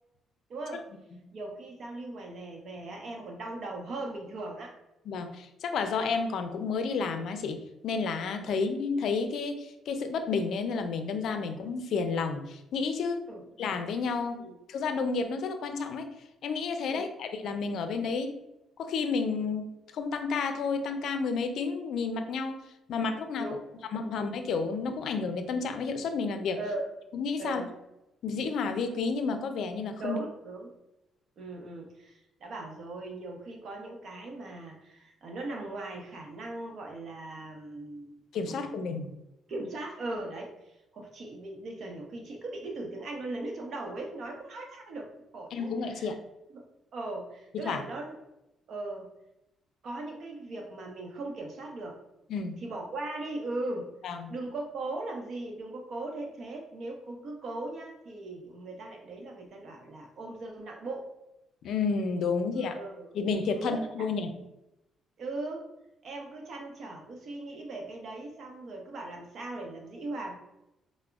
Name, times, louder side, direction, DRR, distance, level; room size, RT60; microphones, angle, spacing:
voice 1, 0.5-0.8 1.3-4.8 8.5-8.6 13.3-13.4 14.4-14.5 16.9-17.1 18.0-18.2 23.4-24.2 26.6-26.9 27.4-27.7 30.0-30.7 31.4-38.2 38.5-38.8 39.5-40.5 40.9-46.1 46.5-46.6 46.9-48.2 48.7-49.1 49.8-52.0 52.6-53.9 54.3-61.1 62.5-63.1 63.5-64.1 65.2-65.7 66.0-70.4, right 2 dB, 60° right, 1 dB, 0.7 m, -39 dB
voice 2, 5.1-13.2 13.6-16.1 16.4-18.4 18.8-19.7 19.9-22.6 22.9-23.6 23.9-26.6 27.1-27.6 28.2-30.2 38.3-39.1 45.5-46.2 47.5-47.8 52.3-52.6 54.0-54.3 61.6-62.7 63.1-64.3, left 4 dB, 70° left, 7 dB, 0.4 m, -31 dB
4.8 x 2.0 x 2.3 m, 0.90 s
cardioid pair, 90°, 0 cm